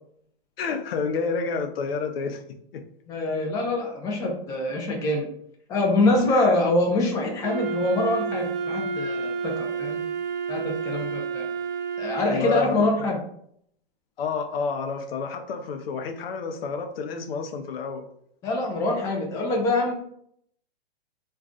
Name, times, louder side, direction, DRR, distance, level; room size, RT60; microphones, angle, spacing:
voice 1, 0.6-2.4 2.7-2.8 6.3-6.5 12.3-13.1 14.2-18.0, left 5 dB, 65° left, 6 dB, 0.6 m, -29 dB
voice 2, 3.1-5.3 5.7-10.0 10.5-11.4 12.0-13.2 18.4-19.9, left 2 dB, 10° left, -1 dB, 0.4 m, -24 dB
Wind instrument woodwind instrument, 7.4-12.6, right 5 dB, 60° right, 0.5 m, -30 dB
2.4 x 2.3 x 3.6 m, 0.68 s
hypercardioid pair, 125°, 32 cm